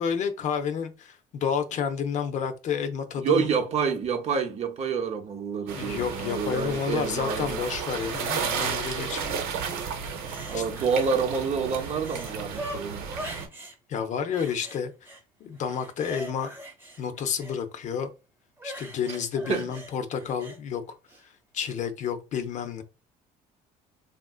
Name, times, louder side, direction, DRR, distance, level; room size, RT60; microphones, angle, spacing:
voice 1, 0.0-3.5 5.7-9.4 10.5-10.6 13.9-15.1 15.4-16.5 17.0-18.1 18.6-21.0 21.2-22.8, left 7 dB, 50° left, 0.6 m, -30 dB
voice 2, 3.2-7.6 10.5-13.1 19.5-19.7, right 6 dB, 45° right, 0.7 m, -28 dB
sound 1, 5.7-13.5, right 6 dB, 75° right, 0.9 m, -33 dB
sound 2, 10.0-11.2 11.5-13.8 14.3-15.2 15.6-17.6 18.6-20.6 21.1-21.2, right 1 dB, 15° right, 0.8 m, -42 dB
3.5 x 2.5 x 2.4 m
cardioid pair, 105°, 16 cm